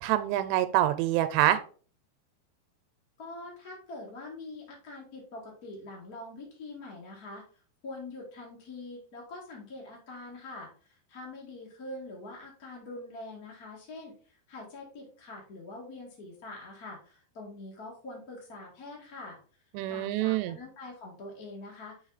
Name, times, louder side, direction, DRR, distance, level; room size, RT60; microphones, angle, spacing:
voice 1, 0.0-1.6 19.7-20.6, right 13 dB, 90° right, 12 dB, 2.8 m, -26 dB
voice 2, 3.2-7.4 7.8-14.1 14.5-19.4 19.9-21.9, left 2 dB, 40° left, -3 dB, 1.2 m, -44 dB
5.4 x 5.2 x 4.0 m, 0.41 s
omnidirectional pair, 5.0 m